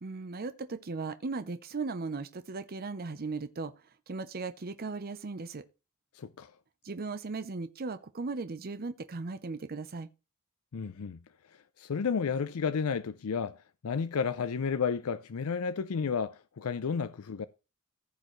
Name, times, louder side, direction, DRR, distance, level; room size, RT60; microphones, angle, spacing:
voice 1, 0.0-3.7 4.1-5.6 6.8-10.1, right 3 dB, 45° right, 0.6 m, -37 dB
voice 2, 6.1-6.5 10.7-11.2 11.8-13.6 13.8-17.5, left 6 dB, 80° left, 0.5 m, -32 dB
15.0 x 6.7 x 3.1 m
head